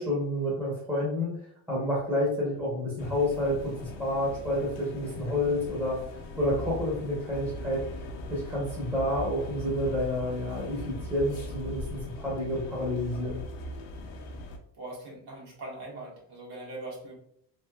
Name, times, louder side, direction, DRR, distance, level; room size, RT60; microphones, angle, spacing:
voice 1, 0.0-7.8 8.3-13.4, left 1 dB, 5° right, -6 dB, 0.8 m, -29 dB
sound 1, 3.0-14.6, left 1 dB, 70° left, 0.8 m, -40 dB
voice 2, 14.7-17.1, right 2 dB, 60° right, -3 dB, 1.5 m, -41 dB
3.4 x 2.6 x 2.3 m, 0.67 s
cardioid pair, 135°, 44 cm